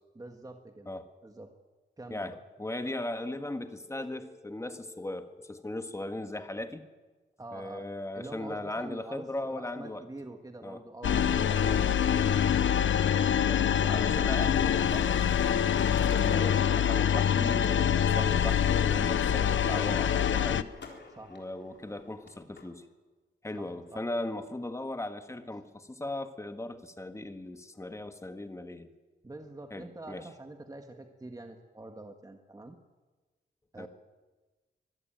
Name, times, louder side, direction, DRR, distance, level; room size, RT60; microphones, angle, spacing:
voice 1, 0.1-0.9 1.2-1.5 2.0-2.3 7.4-7.9 8.1-11.9 12.2-12.4 16.3-16.5 21.1-21.4 23.5-24.0 29.2-32.8 33.7-33.9, right 2 dB, 20° right, 5 dB, 1.6 m, -45 dB
voice 2, 2.1-6.8 7.5-10.0 10.6-10.8 13.1-15.3 15.9-20.7 21.3-22.9 23.4-28.9 29.7-30.3 33.8-33.9, left 2 dB, 15° left, 8 dB, 1.6 m, -38 dB
sound 1, 11.0-20.6, left 8 dB, 85° left, 0.8 m, -25 dB
sound 2, 14.9-16.9 17.3-17.8 18.3-18.6 18.9-22.6, left 4 dB, 65° left, 3.8 m, -52 dB
24.5 x 16.5 x 9.1 m, 1.3 s
wide cardioid pair, 140°, 19 cm